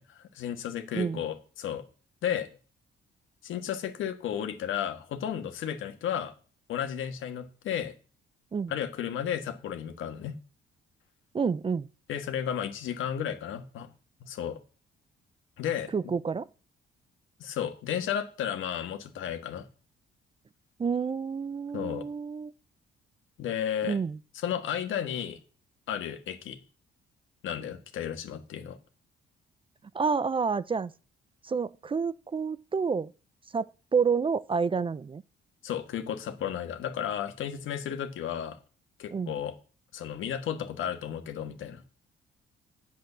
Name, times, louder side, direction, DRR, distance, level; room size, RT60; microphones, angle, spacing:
voice 1, 0.0-1.8 2.2-2.5 3.4-6.3 6.7-7.9 8.7-10.3 12.1-13.9 14.2-14.6 15.6-15.9 17.4-19.6 21.7-22.0 23.4-24.0 24.3-25.4 25.9-26.6 27.4-28.8 35.6-38.6 39.0-39.5 39.9-41.8, left 9 dB, 80° left, 1.6 m, -33 dB
voice 2, 11.3-11.9 15.9-16.5 20.8-22.5 23.8-24.2 29.9-30.9 31.4-33.1 33.5-35.2 39.1-39.3, right 5 dB, 25° right, 0.4 m, -29 dB
8.6 x 7.7 x 6.8 m
cardioid pair, 90°, 20 cm